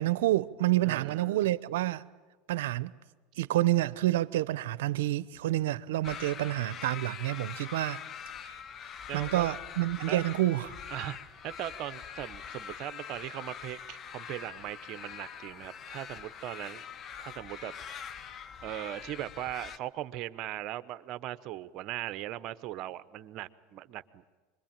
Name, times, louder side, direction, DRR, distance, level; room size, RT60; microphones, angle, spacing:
voice 1, 0.0-2.0 2.5-2.9 3.4-8.0 8.4-8.6 9.1-10.7, right 15 dB, 80° right, 0.7 m, -28 dB
voice 2, 0.8-1.5 9.1-9.5 10.1-10.2 10.9-11.2 11.4-16.8 17.2-17.7 18.6-24.4, right 13 dB, 50° right, 1.0 m, -39 dB
sound 1, 6.0-19.8, left 8 dB, 35° left, 0.9 m, -44 dB
25.5 x 22.0 x 8.9 m
supercardioid pair, 110°, 0 cm